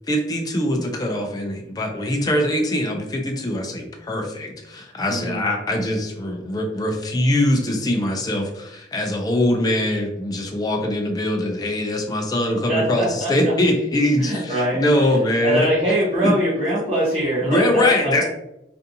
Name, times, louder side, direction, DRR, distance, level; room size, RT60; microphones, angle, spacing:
voice 1, 0.1-15.7 16.2-16.3 17.4-18.2, left 1 dB, 20° left, 2 dB, 0.4 m, -22 dB
voice 2, 5.1-5.5 12.7-13.3 14.2-14.8 15.4-18.2, right 1 dB, 35° right, -9 dB, 0.6 m, -22 dB
2.5 x 2.4 x 2.7 m, 0.84 s
head